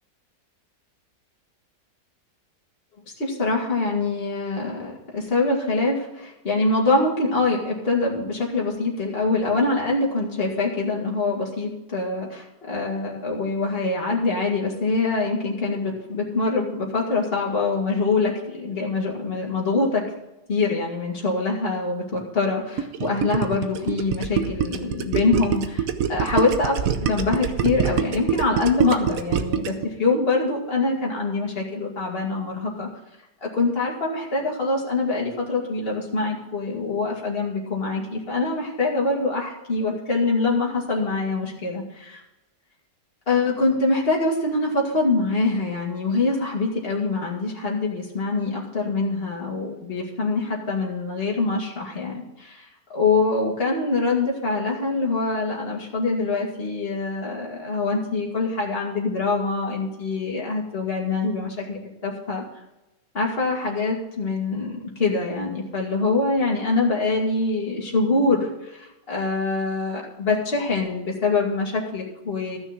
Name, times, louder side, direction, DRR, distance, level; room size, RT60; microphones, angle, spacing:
voice 1, 3.2-20.0 20.5-32.9 33.4-42.2 43.3-62.4 63.1-72.6, left 3 dB, 35° left, -3 dB, 2.5 m, -24 dB
Gurgling, 22.8-29.9, right 8 dB, 60° right, 1.1 m, -24 dB
14.0 x 6.3 x 6.0 m, 0.96 s
omnidirectional pair, 1.9 m